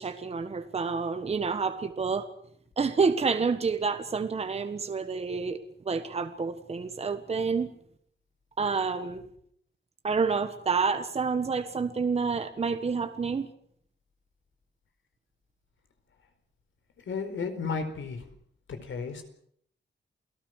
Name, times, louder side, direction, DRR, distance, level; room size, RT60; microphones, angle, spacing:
voice 1, 0.0-2.2 2.8-5.6 5.8-7.7 8.6-9.2 10.0-13.5, right 5 dB, 30° right, 8 dB, 1.4 m, -28 dB
voice 2, 17.1-18.3 18.7-19.2, left 5 dB, 75° left, 8 dB, 4.5 m, -33 dB
29.0 x 18.5 x 6.5 m, 0.66 s
wide cardioid pair, 180°, 20 cm